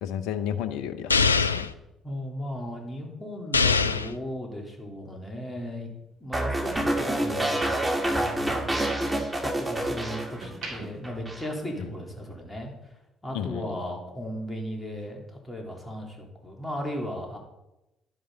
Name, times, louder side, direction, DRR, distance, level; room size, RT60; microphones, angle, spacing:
voice 1, 0.0-1.7 11.8-11.9 13.3-13.8, left 9 dB, 65° left, 12 dB, 0.7 m, -33 dB
sound 1, 1.1-1.7 3.5-4.1, left 5 dB, 85° left, 0.3 m, -22 dB
voice 2, 2.0-5.9 6.2-12.9 13.2-17.4, equal, 15° left, 0 dB, 3.7 m, -36 dB
sound 2, 5.6-7.9 8.3-9.7 10.2-12.3 12.6-12.9, right 2 dB, 70° right, 3.0 m, -45 dB
sound 3, 6.3-10.8 11.0-11.5, right 1 dB, 10° right, 2.5 m, -27 dB
11.5 x 10.0 x 4.0 m, 0.92 s
figure-of-eight pair, 45°, 0 cm